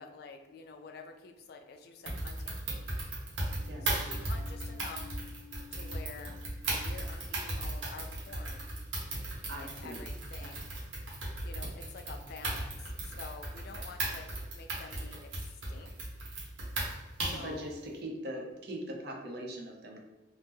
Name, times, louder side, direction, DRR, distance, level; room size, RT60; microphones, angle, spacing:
voice 1, 0.0-2.6 3.8-5.1 5.7-6.3 6.7-8.6 9.6-10.7 11.4-15.9 17.2-17.7, left 4 dB, 55° left, 5 dB, 0.3 m, -48 dB
sound 1, 2.1-17.5, right 2 dB, 80° right, 0.9 m, -36 dB
sound 2, 3.5-9.9, left 6 dB, 5° left, 0.8 m, -54 dB
voice 2, 9.2-10.0 10.4-10.5 17.3-20.0, right 1 dB, 55° right, 1 dB, 0.6 m, -41 dB
2.8 x 2.0 x 3.5 m, 1.1 s
head